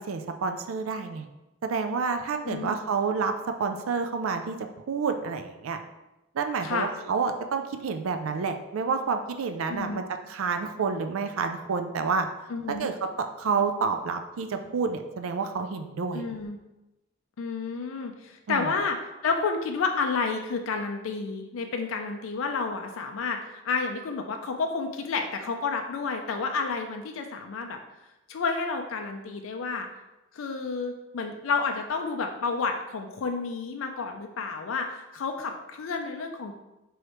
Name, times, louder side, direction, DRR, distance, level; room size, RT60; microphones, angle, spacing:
voice 1, 0.1-1.3 1.6-3.3 3.6-5.8 6.3-12.3 12.7-16.2 18.5-18.7, right 5 dB, 80° right, 7 dB, 0.4 m, -29 dB
voice 2, 6.6-6.9 9.7-10.0 12.5-12.9 16.1-16.6 17.4-19.0 19.2-27.8 28.3-29.9 30.3-36.5, left 4 dB, 70° left, 4 dB, 0.4 m, -30 dB
4.7 x 3.1 x 3.0 m, 0.98 s
head